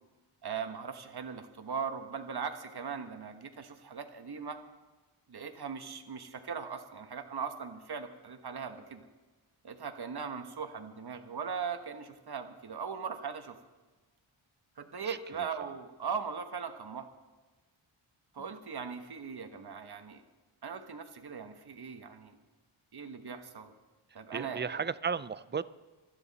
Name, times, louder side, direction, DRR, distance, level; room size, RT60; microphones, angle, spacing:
voice 1, 0.4-4.6 5.3-9.0 9.6-13.6 14.8-17.1 18.3-20.2 20.6-22.4 22.9-23.7 24.1-24.8, right 6 dB, 50° right, 7 dB, 1.3 m, -39 dB
voice 2, 24.3-25.6, right 6 dB, 25° right, 16 dB, 0.4 m, -34 dB
26.0 x 9.7 x 4.1 m, 1.2 s
wide cardioid pair, 105°, 50 cm